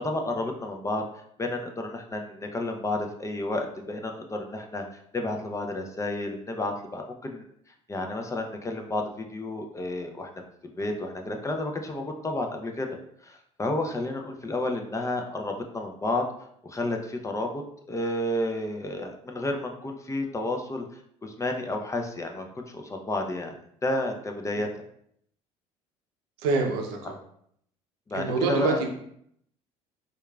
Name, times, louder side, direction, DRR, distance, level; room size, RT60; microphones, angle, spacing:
voice 1, 0.0-1.0 1.4-4.8 5.1-7.4 7.9-10.3 10.6-12.9 13.2-16.2 16.6-17.6 17.9-20.8 21.2-23.5 23.8-24.7 28.1-28.8, left 2 dB, 20° left, 3 dB, 0.5 m, -31 dB
voice 2, 26.4-27.2 28.1-28.9, right 4 dB, 75° right, 3 dB, 0.6 m, -26 dB
4.6 x 2.4 x 2.3 m, 0.69 s
hypercardioid pair, 70°, 16 cm